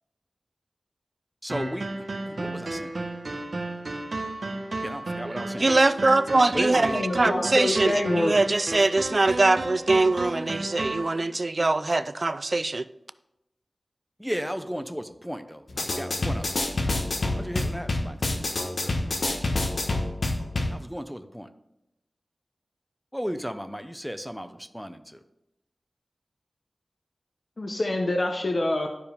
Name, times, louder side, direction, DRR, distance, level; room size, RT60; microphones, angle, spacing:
voice 1, 1.4-1.9 2.3-3.0 4.8-5.8 6.5-7.0 14.2-17.0 17.4-18.4 18.8-19.7 20.7-21.5 23.1-25.2, equal, ahead, 0.5 m, -35 dB
sound 1, 1.5-11.1, right 2 dB, 65° right, 1.0 m, -33 dB
voice 2, 5.6-6.9 7.2-12.8, right 2 dB, 50° right, 0.3 m, -22 dB
voice 3, 6.9-8.3 27.6-28.9, left 1 dB, 55° left, 0.8 m, -26 dB
sound 2, 15.7-20.7, left 2 dB, 80° left, 1.1 m, -27 dB
12.0 x 4.7 x 3.4 m
wide cardioid pair, 70°, 0 cm